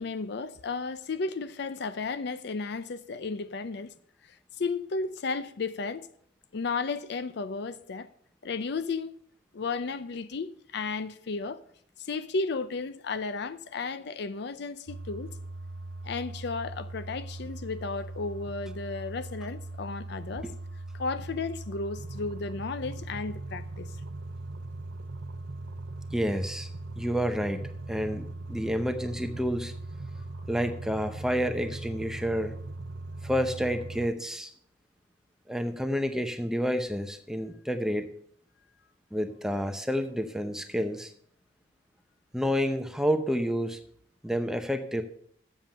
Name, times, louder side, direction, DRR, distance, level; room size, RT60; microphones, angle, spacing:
voice 1, 0.0-3.9 4.6-6.1 6.5-8.1 8.4-9.1 9.5-11.6 12.1-15.3 16.0-20.5 20.9-23.9, left 4 dB, 65° left, 0.5 m, -33 dB
sound 1, 14.9-34.1, right 2 dB, 80° right, 0.7 m, -40 dB
voice 2, 26.1-26.7 27.0-27.6 27.9-29.7 30.5-32.5 33.2-34.5 35.5-38.1 39.1-41.1 42.3-43.8 44.2-45.0, equal, 5° right, 0.7 m, -29 dB
7.5 x 7.4 x 6.5 m
head